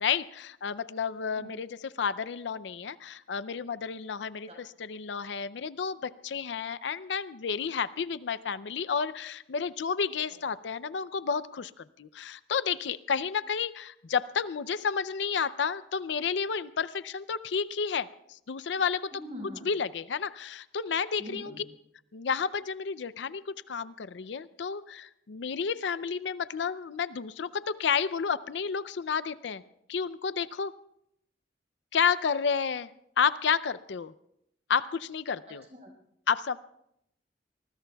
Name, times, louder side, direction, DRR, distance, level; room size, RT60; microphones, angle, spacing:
voice 1, 0.0-19.1 19.6-21.7 22.1-29.6 29.9-30.7 31.9-32.9 33.2-34.1 34.7-35.6 36.3-36.6, left 6 dB, 75° left, 16 dB, 0.5 m, -31 dB
voice 2, 19.1-19.7 21.2-21.6 35.5-35.9, equal, 35° right, 1 dB, 5.2 m, -43 dB
25.5 x 20.0 x 2.3 m, 0.76 s
head